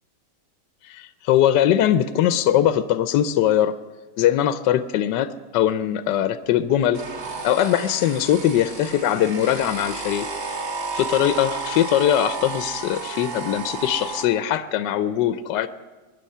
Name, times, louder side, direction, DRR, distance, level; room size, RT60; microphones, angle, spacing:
voice 1, 0.8-3.7 4.2-7.0 7.4-10.3 10.9-15.7, left 11 dB, 70° left, 12 dB, 1.2 m, -21 dB
sound 1, 6.9-14.3, right 4 dB, 50° right, 2.0 m, -32 dB
23.0 x 10.0 x 5.6 m, 1.3 s
omnidirectional pair, 2.1 m